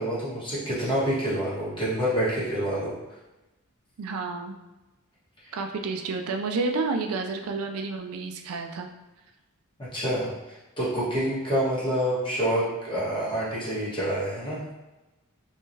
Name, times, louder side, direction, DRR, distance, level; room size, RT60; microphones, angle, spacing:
voice 1, 0.0-2.9 9.9-14.6, equal, 25° left, -8 dB, 1.3 m, -27 dB
voice 2, 4.0-4.6 5.5-8.9, right 3 dB, 75° right, 4 dB, 0.4 m, -30 dB
3.7 x 3.1 x 2.7 m, 1.1 s
head